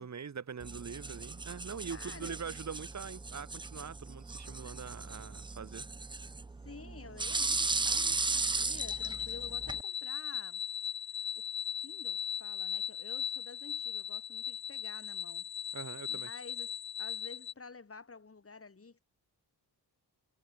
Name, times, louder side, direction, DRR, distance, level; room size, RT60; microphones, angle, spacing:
voice 1, 0.0-5.9 15.7-16.3, right 6 dB, 45° right, 1.4 m, -43 dB
sound 1, 0.6-9.8, right 3 dB, 15° right, 0.3 m, -36 dB
voice 2, 1.9-2.4 6.6-10.6 11.4-11.5 11.8-15.8 16.1-19.0, left 4 dB, 35° left, 3.8 m, -51 dB
sound 2, 8.8-17.5, left 8 dB, 65° left, 1.4 m, -38 dB
wide cardioid pair, 145°, 40 cm